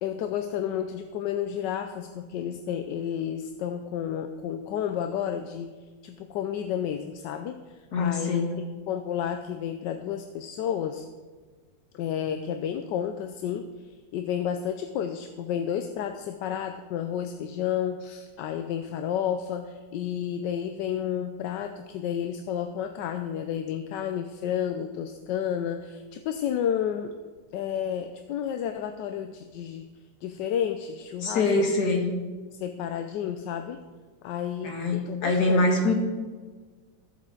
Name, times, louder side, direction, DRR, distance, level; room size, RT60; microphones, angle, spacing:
voice 1, 0.0-5.7 6.0-8.5 8.9-11.0 11.9-13.7 14.1-27.2 27.5-29.9 30.2-31.5 32.6-33.8 34.2-35.7, left 9 dB, 75° left, 7 dB, 1.2 m, -31 dB
voice 2, 7.9-8.6 31.2-32.2 34.6-35.9, left 2 dB, 60° left, 2 dB, 2.0 m, -24 dB
14.0 x 7.5 x 3.8 m, 1.4 s
omnidirectional pair, 2.1 m